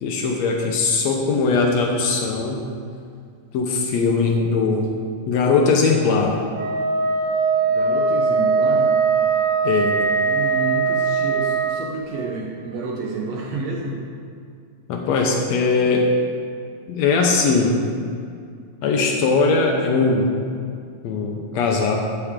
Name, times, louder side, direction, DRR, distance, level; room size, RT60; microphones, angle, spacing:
voice 1, 0.0-2.6 3.5-4.9 5.3-6.4 9.6-10.0 14.9-16.1 16.9-17.8 18.8-20.3 21.0-22.0, left 4 dB, 80° left, 1 dB, 1.5 m, -20 dB
Wind instrument woodwind instrument, 6.5-11.8, right 4 dB, 50° right, 1.8 m, -20 dB
voice 2, 7.6-9.0 10.2-14.0, right 3 dB, 70° right, -1 dB, 1.6 m, -30 dB
13.0 x 8.4 x 3.7 m, 2.3 s
omnidirectional pair, 4.1 m